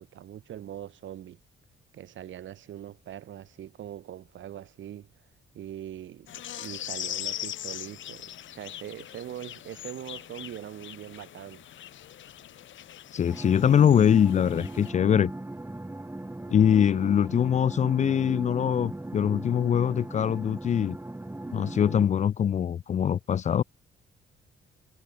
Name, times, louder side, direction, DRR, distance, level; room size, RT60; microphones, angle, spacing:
voice 1, 0.0-1.4 1.9-5.1 5.5-11.6, right 11 dB, 70° right, 7.4 m, -42 dB
sound 1, 6.3-14.9, left 12 dB, 75° left, 4.6 m, -40 dB
voice 2, 13.1-15.3 16.5-21.0 21.5-23.6, left 9 dB, 35° left, 0.3 m, -23 dB
sound 2, 13.3-22.1, right 2 dB, 10° right, 3.2 m, -38 dB
cardioid pair, 90°, 20 cm